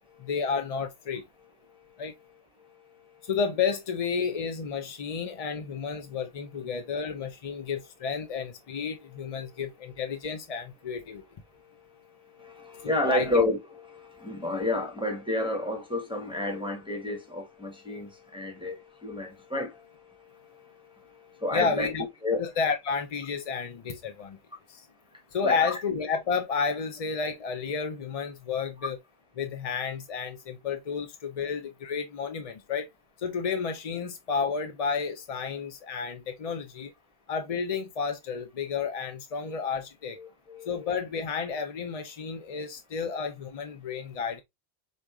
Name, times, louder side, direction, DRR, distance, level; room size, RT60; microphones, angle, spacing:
voice 1, 0.2-1.2 2.0-2.1 3.2-11.2 13.0-13.3 21.5-22.1 22.4-24.4 24.7-24.9 25.3-29.0 29.4-32.9 33.2-36.9 37.3-40.2 40.7-44.4, left 5 dB, 45° left, 0.5 m, -31 dB
voice 2, 12.4-19.8 21.4-21.9 22.2-22.4 25.4-25.7 40.2-40.9, left 2 dB, 5° right, 1.0 m, -30 dB
4.1 x 2.4 x 4.7 m
omnidirectional pair, 1.1 m